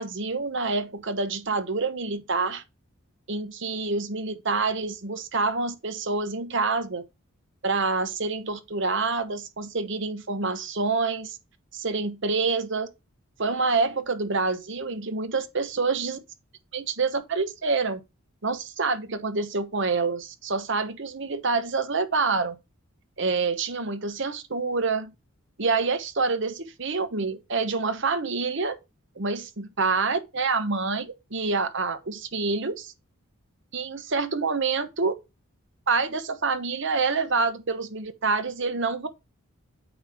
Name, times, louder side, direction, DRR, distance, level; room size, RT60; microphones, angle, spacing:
voice 1, 0.0-2.6 3.3-7.0 7.6-11.4 11.7-12.9 13.4-16.2 16.7-18.0 18.4-22.5 23.2-25.1 25.6-28.8 29.2-32.9 33.7-35.1 35.9-39.1, right 4 dB, 55° right, 1.0 m, -27 dB
9.0 x 3.1 x 4.9 m
head